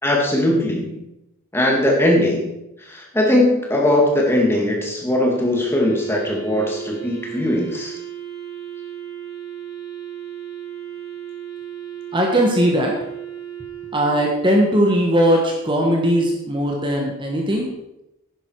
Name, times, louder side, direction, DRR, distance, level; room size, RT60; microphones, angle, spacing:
voice 1, 0.0-1.0 1.5-2.5 2.9-7.9, left 1 dB, 10° left, -1 dB, 2.2 m, -19 dB
Wind instrument woodwind instrument, 5.3-14.5, right 10 dB, 45° right, 5.0 m, -35 dB
voice 2, 12.1-12.9 13.9-17.7, equal, 20° right, 0 dB, 1.4 m, -19 dB
11.0 x 10.5 x 4.7 m, 0.90 s
head